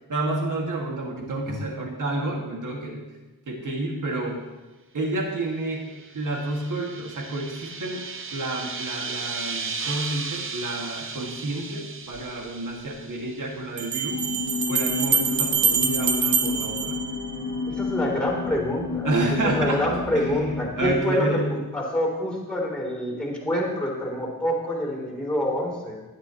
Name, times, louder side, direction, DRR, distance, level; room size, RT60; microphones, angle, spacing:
voice 1, 0.1-3.0 3.5-4.4 4.9-8.0 8.3-14.3 14.7-17.0 19.0-21.5, right 2 dB, 55° right, -1 dB, 2.3 m, -29 dB
sound 1, 5.7-14.0, right 4 dB, 35° right, 0.8 m, -36 dB
sound 2, 12.1-12.2 13.8-17.7, right 6 dB, 85° right, 1.2 m, -25 dB
sound 3, 14.1-20.9, left 4 dB, 50° left, 0.8 m, -31 dB
voice 2, 17.7-19.1 19.4-26.0, left 1 dB, 5° left, -2 dB, 3.5 m, -27 dB
16.5 x 11.5 x 3.1 m, 1.1 s
wide cardioid pair, 170°, 37 cm